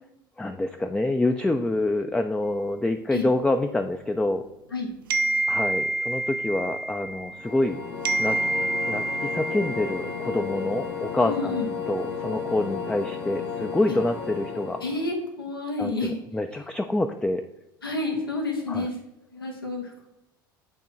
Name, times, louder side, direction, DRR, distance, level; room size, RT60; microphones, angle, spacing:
voice 1, 0.4-4.4 5.5-7.8 8.2-8.4 8.9-11.6 11.9-14.8 15.8-17.4 18.7-18.9, left 2 dB, 5° left, 7 dB, 0.3 m, -26 dB
sound 1, 5.1-7.7 8.0-10.6, right 2 dB, 75° right, 0.4 m, -28 dB
sound 2, 7.3-15.1, left 6 dB, 65° left, 1.2 m, -33 dB
voice 2, 11.2-11.7 13.9-14.0 14.8-16.2 17.8-19.0 19.3-20.1, left 2 dB, 85° left, 2 dB, 1.0 m, -29 dB
8.3 x 3.0 x 4.2 m, 0.94 s
figure-of-eight pair, 65°, 12 cm